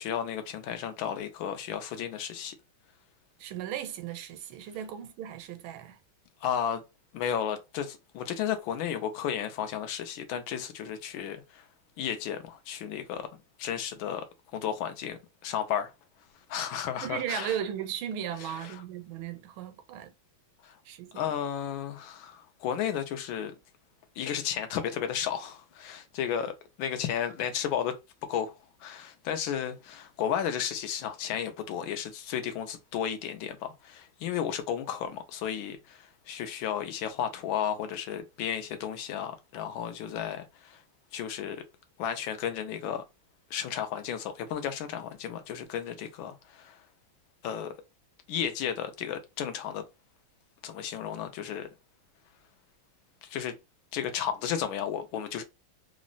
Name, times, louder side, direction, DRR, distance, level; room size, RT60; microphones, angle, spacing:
voice 1, 0.0-2.5 6.4-6.8 7.1-11.6 12.0-13.3 13.6-14.3 14.5-15.9 16.5-17.6 18.6-18.7 20.6-20.7 21.1-23.6 24.2-26.5 26.8-28.0 28.3-28.5 28.8-40.8 41.1-41.6 42.0-43.0 43.5-46.8 47.4-47.8 48.3-49.8 50.6-51.7 53.2-53.5 53.9-55.4, left 9 dB, 85° left, 1.4 m, -33 dB
voice 2, 3.4-6.0 17.0-20.1 20.8-21.3, right 10 dB, 90° right, 1.4 m, -36 dB
3.6 x 2.0 x 2.4 m
omnidirectional pair, 2.2 m